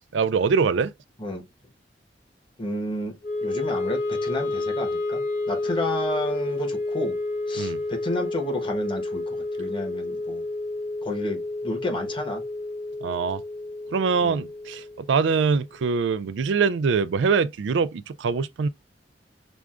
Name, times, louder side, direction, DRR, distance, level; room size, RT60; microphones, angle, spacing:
voice 1, 0.1-0.9 7.6-7.8 13.0-13.4 13.9-18.7, right 5 dB, 80° right, 0.4 m, -23 dB
voice 2, 2.6-7.2 7.5-10.4 11.0-12.4 14.2-14.4, left 1 dB, 30° left, 1.1 m, -31 dB
Wind instrument woodwind instrument, 3.2-15.5, left 2 dB, 45° left, 1.5 m, -30 dB
6.1 x 2.2 x 2.4 m
head